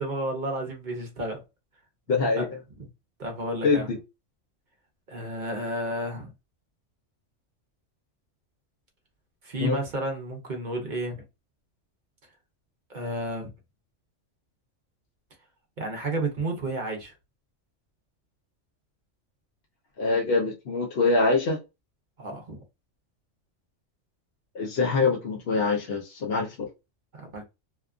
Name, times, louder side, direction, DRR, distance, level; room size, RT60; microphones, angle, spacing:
voice 1, 0.0-1.4 2.4-2.5 3.2-3.9 5.1-6.3 9.4-11.2 12.9-13.5 15.8-17.1 22.2-22.6 27.1-27.4, right 1 dB, 45° right, 0.7 m, -31 dB
voice 2, 2.1-2.5 3.6-4.0 9.6-9.8 20.0-21.6 24.5-26.7, left 3 dB, 60° left, 0.8 m, -24 dB
2.8 x 2.3 x 2.3 m
omnidirectional pair, 1.3 m